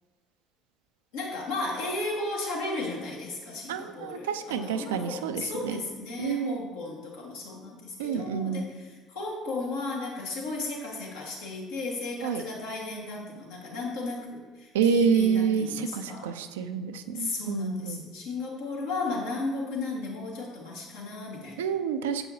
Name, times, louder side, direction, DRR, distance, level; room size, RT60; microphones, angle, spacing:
voice 1, 1.1-16.3 17.1-21.6, left 3 dB, 80° left, -3 dB, 1.5 m, -35 dB
voice 2, 3.7-5.8 6.2-6.6 8.0-8.7 12.2-12.4 14.7-18.0 21.6-22.3, right 6 dB, 85° right, 9 dB, 0.3 m, -28 dB
7.3 x 5.5 x 2.8 m, 1.3 s
hypercardioid pair, 65°, 0 cm